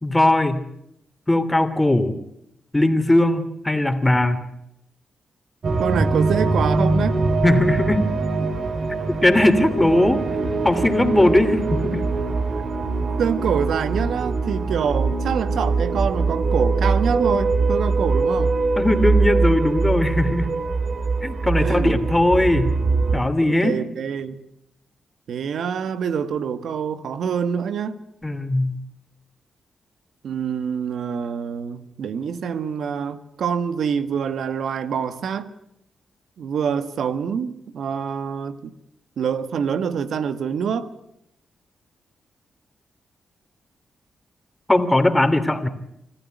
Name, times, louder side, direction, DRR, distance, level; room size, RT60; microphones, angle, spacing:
voice 1, 0.0-0.6 1.3-2.2 2.7-4.4 7.4-8.1 9.2-10.2 10.6-12.0 18.8-20.5 21.2-22.7 23.1-23.8 28.2-28.7 44.7-45.7, left 1 dB, 15° left, 3.0 m, -19 dB
sound 1, 5.6-23.2, right 3 dB, 55° right, 2.4 m, -22 dB
voice 2, 5.8-7.2 12.6-12.7 13.2-18.6 21.6-22.0 23.6-24.4 25.3-28.0 30.2-35.5 36.4-38.7 39.2-40.9, right 7 dB, 75° right, 1.5 m, -26 dB
26.0 x 15.0 x 9.3 m
cardioid pair, 65°, 0 cm